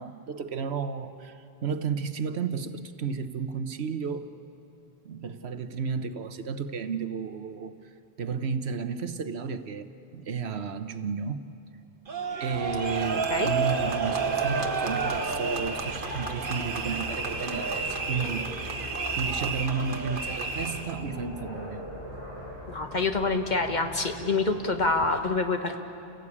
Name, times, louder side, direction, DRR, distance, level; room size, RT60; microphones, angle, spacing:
voice 1, 0.0-4.3 5.0-7.8 8.2-11.4 12.4-18.7 19.2-21.8, right 5 dB, 70° right, 11 dB, 1.2 m, -32 dB
sound 1, 12.1-21.0, right 5 dB, 50° right, 1.3 m, -31 dB
sound 2, 12.5-25.1, left 1 dB, 85° left, 7.1 m, -40 dB
voice 2, 22.7-25.8, left 3 dB, 45° left, 5 dB, 1.5 m, -26 dB
29.5 x 17.0 x 8.5 m, 2.8 s
omnidirectional pair, 1.1 m